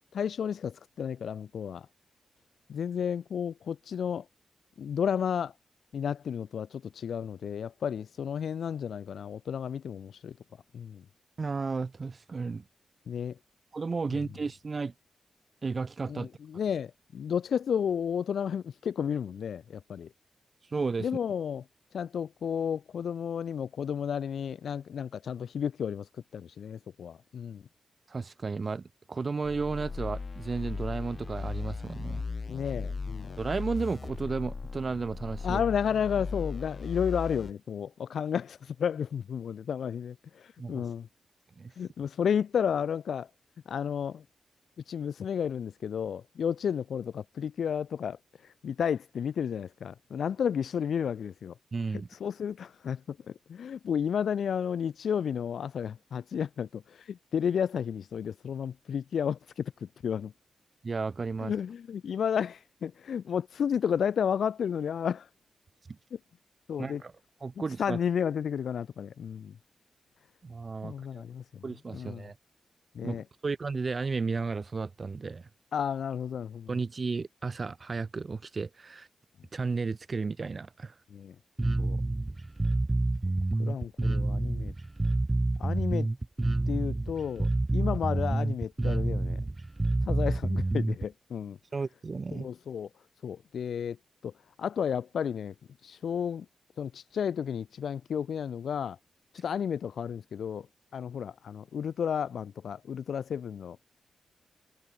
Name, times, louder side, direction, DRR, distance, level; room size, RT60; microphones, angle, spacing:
voice 1, 0.1-1.9 2.7-4.2 4.8-5.5 5.9-10.3 10.7-11.0 13.1-13.3 16.1-20.1 21.0-21.6 21.9-26.1 26.3-27.6 32.5-33.4 35.4-41.1 41.8-43.3 43.7-44.2 44.9-48.2 48.6-51.5 52.1-53.2 53.5-59.7 60.0-60.3 61.4-65.3 66.7-67.0 67.8-69.5 70.8-71.4 71.9-72.2 72.9-73.2 75.7-76.7 81.1-81.3 81.8-82.0 83.6-84.7 85.6-86.1 86.7-89.4 90.1-91.6 92.3-92.9 93.2-94.0 94.2-94.3 94.6-95.5 95.8-96.4 96.8-99.0 99.3-100.7 100.9-103.8, left 8 dB, 80° left, 1.6 m, -32 dB
voice 2, 11.4-12.6 13.7-14.9 15.6-16.3 20.7-21.1 28.1-32.2 33.4-35.6 40.6-40.8 41.6-41.7 51.7-52.1 60.8-61.5 66.8-67.1 67.4-68.0 70.4-70.9 71.6-72.3 73.0-75.5 76.7-79.1 79.5-80.9 91.7-92.5, right 4 dB, 40° right, 0.9 m, -33 dB
sound 1, 29.4-37.5, left 4 dB, 35° left, 1.6 m, -37 dB
Bass guitar, 81.6-91.1, right 2 dB, 20° right, 0.6 m, -28 dB
wide cardioid pair, 120°, 0 cm